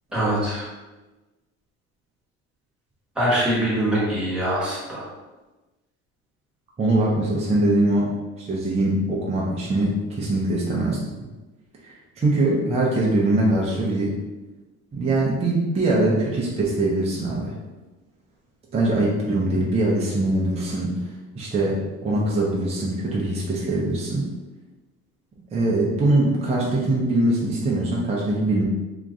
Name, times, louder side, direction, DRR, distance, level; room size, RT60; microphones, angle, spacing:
voice 1, 0.1-0.7 3.1-5.1, right 1 dB, 5° right, -7 dB, 1.2 m, -23 dB
voice 2, 6.8-8.1 8.4-11.0 11.8-14.2 14.9-17.5 18.7-21.1 21.4-24.2 25.5-28.6, right 2 dB, 20° right, -4 dB, 0.6 m, -22 dB
2.9 x 2.5 x 3.5 m, 1.1 s
cardioid pair, 140°, 31 cm